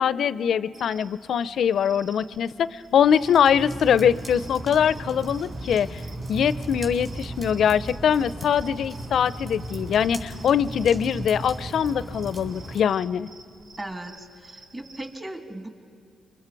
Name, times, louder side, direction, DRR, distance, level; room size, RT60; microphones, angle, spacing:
voice 1, 0.0-6.0 6.3-13.3, left 8 dB, 70° left, 17 dB, 0.5 m, -22 dB
sound 1, 0.7-15.2, right 2 dB, 80° right, 5.2 m, -51 dB
sound 2, 2.9-12.8, right 1 dB, 45° right, 4.3 m, -36 dB
voice 2, 13.8-15.7, right 1 dB, 25° right, 5 dB, 2.2 m, -37 dB
27.5 x 23.5 x 4.6 m, 2.6 s
cardioid pair, 80°, 0 cm